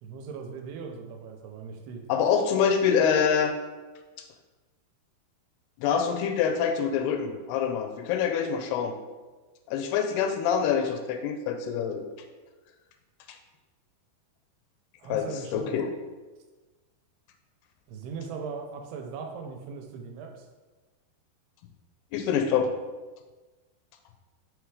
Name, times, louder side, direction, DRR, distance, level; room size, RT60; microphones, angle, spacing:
voice 1, 0.0-2.0 15.0-15.8 17.9-20.5, right 5 dB, 90° right, 3 dB, 2.7 m, -39 dB
voice 2, 2.1-3.6 5.8-9.0 9.7-12.0 13.3-13.4 15.1-15.3 15.5-15.9 22.1-22.7, left 7 dB, 85° left, 6 dB, 2.4 m, -25 dB
6.5 x 3.3 x 4.8 m, 1.2 s
omnidirectional pair, 4.7 m